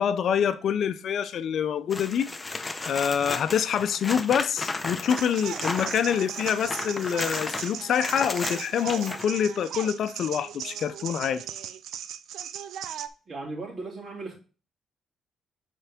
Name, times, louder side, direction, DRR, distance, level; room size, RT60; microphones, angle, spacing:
voice 1, 0.0-2.3 2.8-11.4, left 8 dB, 65° left, 0.5 m, -26 dB
sound 1, 1.9-9.3 11.9-12.0, left 3 dB, 20° left, 0.7 m, -34 dB
sound 2, 5.1-13.1, right 9 dB, 75° right, 0.5 m, -38 dB
voice 2, 13.3-14.3, right 3 dB, 45° right, 3.1 m, -36 dB
8.0 x 4.5 x 3.6 m
cardioid pair, 90°, 0 cm